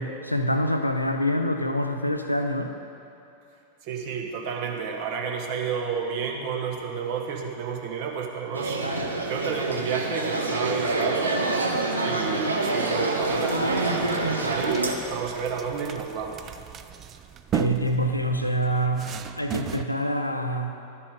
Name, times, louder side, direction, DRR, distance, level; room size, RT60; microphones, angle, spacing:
voice 1, 0.0-2.7 17.5-20.7, equal, 85° left, 6 dB, 0.5 m, -26 dB
voice 2, 3.8-8.8 9.2-11.4 12.0-14.2 14.4-16.5, right 6 dB, 45° right, 1 dB, 1.2 m, -31 dB
sound 1, 8.5-15.0, right 2 dB, 80° right, 0.8 m, -26 dB
sound 2, 13.2-19.9, right 9 dB, 30° right, 0.4 m, -36 dB
13.0 x 6.8 x 3.7 m, 2.7 s
figure-of-eight pair, 90°, 0 cm